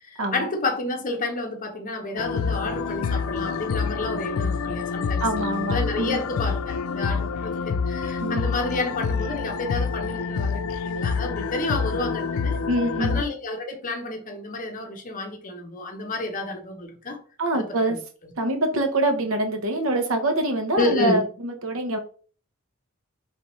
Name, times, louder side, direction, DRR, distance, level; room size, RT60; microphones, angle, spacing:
voice 1, 0.1-5.2 5.7-12.6 13.0-17.2 17.5-18.0 18.2-18.3 20.8-21.2, left 2 dB, 40° left, 0.8 m, -30 dB
sound 1, 2.2-13.2, left 5 dB, 80° left, 0.4 m, -27 dB
voice 2, 5.2-6.2 8.2-8.4 12.7-13.2 17.4-18.0 18.4-22.0, right 1 dB, 70° right, 0.8 m, -25 dB
4.5 x 3.4 x 3.0 m
head